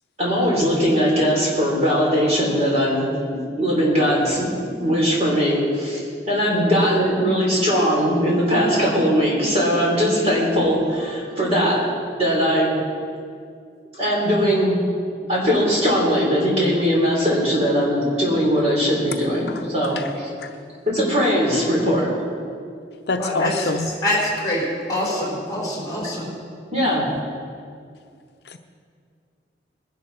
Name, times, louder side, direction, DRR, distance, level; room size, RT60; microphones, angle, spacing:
voice 1, 0.2-6.0 6.3-11.8 12.2-12.7 14.0-14.8 15.3-20.3 20.9-22.1 26.7-27.1, equal, 35° right, -4 dB, 3.9 m, -20 dB
voice 2, 6.5-6.8 20.0-20.1 20.4-20.5 23.1-23.9 28.5-28.6, left 2 dB, 65° left, 6 dB, 0.6 m, -26 dB
voice 3, 23.2-23.7 24.0-26.3, left 1 dB, 20° left, -6 dB, 4.7 m, -24 dB
20.5 x 11.5 x 4.2 m, 2.2 s
head